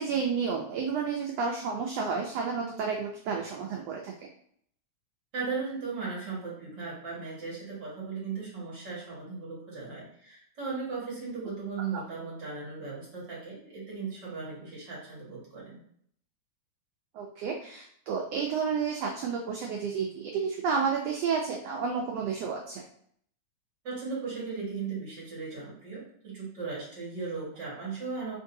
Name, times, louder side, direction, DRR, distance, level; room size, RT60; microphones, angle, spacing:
voice 1, 0.0-4.1 11.9-12.0 17.1-22.8, right 5 dB, 80° right, 1 dB, 1.4 m, -31 dB
voice 2, 5.3-15.8 23.8-28.4, right 4 dB, 40° right, -6 dB, 1.9 m, -37 dB
4.5 x 3.8 x 2.6 m, 0.64 s
omnidirectional pair, 3.5 m